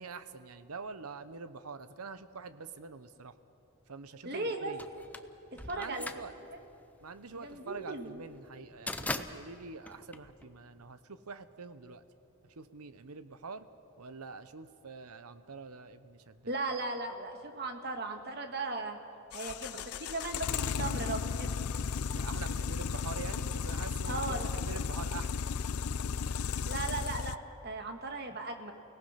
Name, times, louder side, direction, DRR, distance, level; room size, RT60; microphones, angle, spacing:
voice 1, 0.0-3.3 3.9-4.8 5.8-6.3 7.0-12.0 12.6-13.7 14.0-16.5 22.1-24.2 24.5-25.4, right 4 dB, 90° right, 12 dB, 0.9 m, -45 dB
voice 2, 4.2-4.7 5.5-6.4 7.3-8.2 16.5-19.0 19.3-21.7 24.1-24.5 26.7-27.4 27.6-28.7, right 2 dB, 45° right, 5 dB, 1.7 m, -37 dB
sound 1, 4.8-10.9, left 2 dB, 5° left, 0.6 m, -41 dB
sound 2, 19.3-27.4, left 6 dB, 85° left, 0.5 m, -34 dB
29.5 x 18.0 x 5.8 m, 2.8 s
head